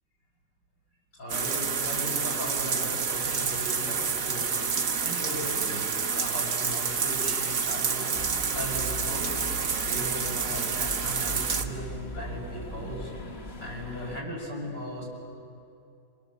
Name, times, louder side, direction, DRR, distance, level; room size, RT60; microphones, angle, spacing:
voice 1, 1.2-4.5 5.0-5.9 6.2-8.1 8.5-9.3 9.8-13.1 13.6-15.0, equal, 75° left, -4 dB, 7.7 m, -37 dB
sound 1, 1.3-11.6, right 6 dB, 50° right, 1.5 m, -28 dB
sound 2, 8.1-14.2, equal, 35° left, 2.0 m, -40 dB
27.5 x 25.5 x 7.2 m, 2.6 s
omnidirectional pair, 1.9 m